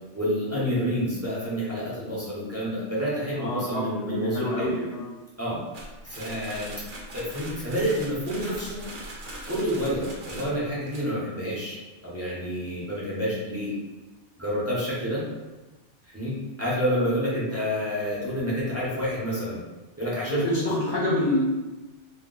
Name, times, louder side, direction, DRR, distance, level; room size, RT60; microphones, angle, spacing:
voice 1, 0.1-4.7 5.4-5.6 6.0-6.8 7.1-8.8 9.5-11.8 12.0-13.7 14.4-15.2 16.1-19.6 20.0-20.6, equal, 15° right, -9 dB, 0.6 m, -28 dB
voice 2, 3.3-5.1 17.5-17.7 20.3-21.4, left 1 dB, 65° left, -7 dB, 1.1 m, -28 dB
sound 1, 5.7-11.0, right 1 dB, 55° right, 0.6 m, -40 dB
2.3 x 2.2 x 3.8 m, 1.1 s
omnidirectional pair, 1.3 m